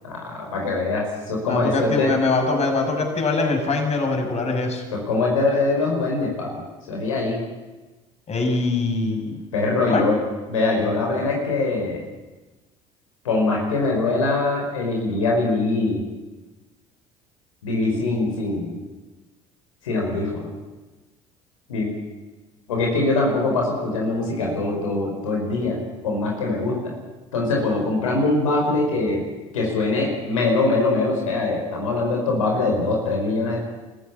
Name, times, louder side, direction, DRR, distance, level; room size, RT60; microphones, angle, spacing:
voice 1, 0.0-2.1 4.9-6.6 6.9-7.4 9.5-10.2 10.5-12.0 13.2-16.0 17.6-18.7 19.8-20.5 21.7-21.9 22.7-25.8 26.0-26.9 27.3-29.2 29.5-33.6, left 3 dB, 85° left, 0 dB, 5.0 m, -23 dB
voice 2, 1.5-4.8 8.3-9.4 9.9-10.1, left 3 dB, 40° left, 3 dB, 6.7 m, -23 dB
25.0 x 15.0 x 9.8 m, 1.2 s
hypercardioid pair, 65°, 17 cm